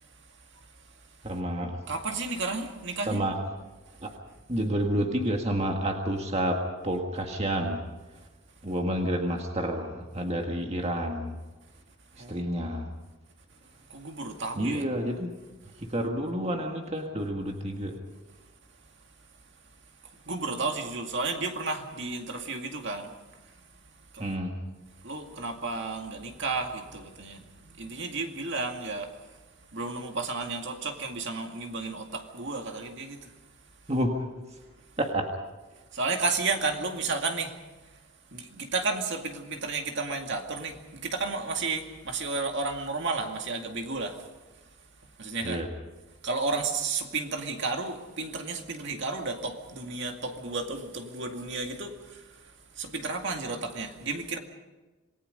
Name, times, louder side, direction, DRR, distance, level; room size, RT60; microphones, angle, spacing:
voice 1, 0.5-0.9 1.9-3.2 12.2-12.4 13.9-14.8 20.0-23.7 24.1-24.3 24.9-33.3 35.9-38.0 38.3-44.3 45.2-45.6 46.2-54.4, right 3 dB, 55° right, 2.2 m, -33 dB
voice 2, 1.2-1.8 3.1-3.4 4.0-4.1 4.5-7.8 8.6-11.4 12.2-12.9 14.6-15.3 15.8-18.0 24.2-24.6 33.9-34.2 35.0-35.3 45.4-45.7, equal, 30° right, 1.7 m, -29 dB
27.5 x 19.5 x 5.4 m
head